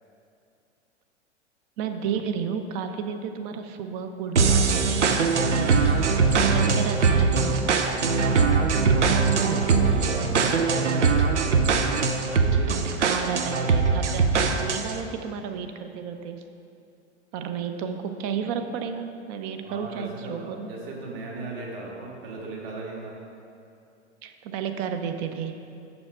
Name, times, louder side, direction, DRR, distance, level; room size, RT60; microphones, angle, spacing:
voice 1, 1.8-5.3 6.3-7.9 12.7-16.4 17.3-20.7 24.2-25.6, right 7 dB, 35° right, 7 dB, 0.6 m, -32 dB
sound 1, 4.4-15.0, right 4 dB, 80° right, 0.7 m, -21 dB
voice 2, 9.7-11.5 12.3-12.9 19.6-23.2, right 3 dB, 50° right, -2 dB, 1.9 m, -37 dB
7.0 x 6.5 x 5.4 m, 2.6 s
figure-of-eight pair, 95°, 35 cm